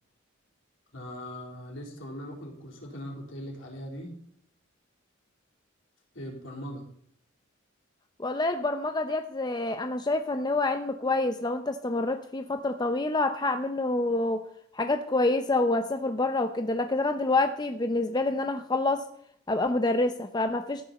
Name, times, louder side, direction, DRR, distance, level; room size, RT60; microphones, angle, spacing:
voice 1, 0.9-4.1 6.1-6.9, equal, 65° left, 0 dB, 3.9 m, -40 dB
voice 2, 8.2-14.4 14.7-19.0 19.5-20.8, left 2 dB, 20° left, 7 dB, 0.7 m, -27 dB
14.0 x 10.5 x 4.3 m, 0.68 s
head